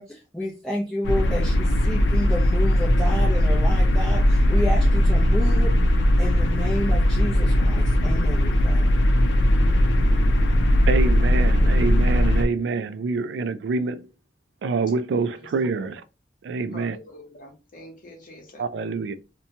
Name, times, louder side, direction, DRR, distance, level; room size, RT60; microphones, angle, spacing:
voice 1, 0.0-8.9, equal, 5° left, 0.5 m, -31 dB
sound 1, 1.0-12.5, equal, 90° left, 0.5 m, -19 dB
voice 2, 10.9-14.1 14.6-16.0 16.4-17.0 18.6-19.2, right 4 dB, 75° right, 0.3 m, -26 dB
voice 3, 15.4-15.9 16.7-18.6, left 1 dB, 50° left, 0.9 m, -45 dB
2.7 x 2.2 x 2.7 m
head